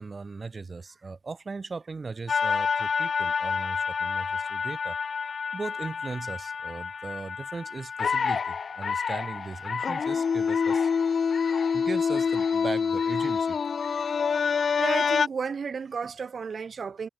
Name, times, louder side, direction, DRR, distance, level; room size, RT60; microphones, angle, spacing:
voice 1, 0.0-5.0 5.5-11.0 11.7-13.6, right 4 dB, 55° right, 3.9 m, -38 dB
sound 1, 2.3-15.3, left 6 dB, 80° left, 1.1 m, -27 dB
voice 2, 14.3-17.1, right 5 dB, 80° right, 1.5 m, -33 dB
cardioid pair, 50°, 0 cm